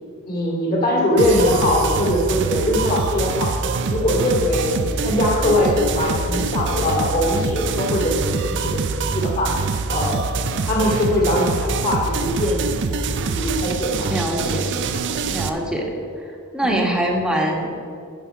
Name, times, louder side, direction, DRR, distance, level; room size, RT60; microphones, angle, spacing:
voice 1, 0.3-3.5 3.9-8.8 9.1-10.2 10.5-12.9 13.3-14.1 16.6-17.0, left 1 dB, 40° left, -3 dB, 2.3 m, -21 dB
sound 1, 1.2-15.5, right 4 dB, 55° right, 0.5 m, -24 dB
voice 2, 14.1-14.8 15.3-15.8 16.2-16.3 16.5-17.9, right 1 dB, 5° right, -1 dB, 1.3 m, -23 dB
9.9 x 5.2 x 6.0 m, 2.4 s
head